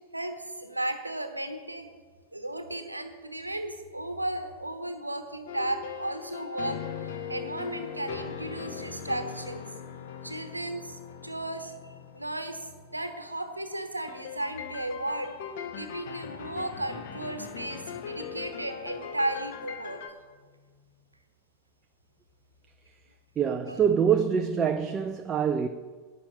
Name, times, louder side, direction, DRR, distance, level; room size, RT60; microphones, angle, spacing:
voice 1, 0.1-1.9 2.3-10.0 10.2-15.3 15.7-20.0 23.7-23.8, right 1 dB, 85° right, 1.1 m, -35 dB
sound 1, 5.5-13.2 14.1-20.1, left 7 dB, 55° left, 1.1 m, -40 dB
voice 2, 23.4-25.7, right 7 dB, 25° right, 0.5 m, -25 dB
11.5 x 9.0 x 5.4 m
figure-of-eight pair, 90°, 0 cm